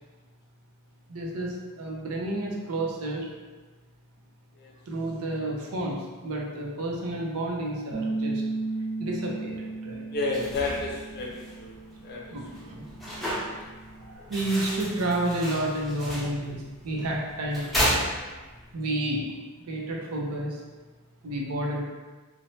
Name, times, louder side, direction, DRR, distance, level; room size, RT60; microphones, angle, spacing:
voice 1, 1.1-3.3 4.9-8.4 9.0-10.0 12.3-12.8 14.0-18.0 18.7-19.2 19.7-20.6 21.2-21.8, right 1 dB, 85° right, -2 dB, 0.6 m, -30 dB
Bass guitar, 7.9-14.2, right 3 dB, 35° right, 0.8 m, -35 dB
voice 2, 10.1-11.7 12.0-12.4, left 3 dB, 45° left, -2 dB, 0.5 m, -31 dB
sound 1, 10.2-18.7, equal, ahead, 0.6 m, -34 dB
3.0 x 2.1 x 2.7 m, 1.3 s
head